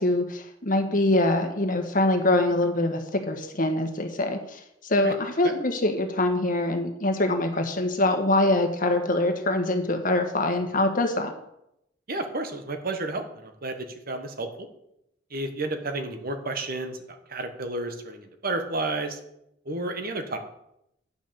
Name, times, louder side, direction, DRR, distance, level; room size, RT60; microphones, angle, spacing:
voice 1, 0.0-11.3, left 2 dB, 45° left, 6 dB, 1.4 m, -24 dB
voice 2, 12.1-14.5 15.3-19.2 19.6-20.4, right 2 dB, 55° right, 7 dB, 1.3 m, -31 dB
9.5 x 6.3 x 6.9 m, 0.81 s
head